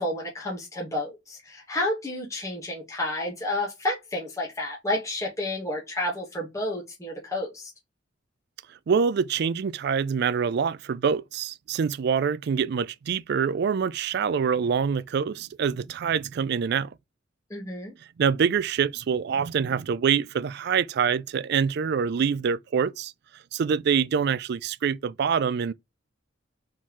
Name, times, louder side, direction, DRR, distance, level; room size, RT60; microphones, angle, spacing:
voice 1, 0.0-7.7 17.5-17.9, left 1 dB, 15° left, 1.3 m, -30 dB
voice 2, 8.9-16.9 18.2-23.1 23.5-25.7, right 6 dB, 55° right, 0.3 m, -25 dB
4.3 x 3.8 x 3.0 m
head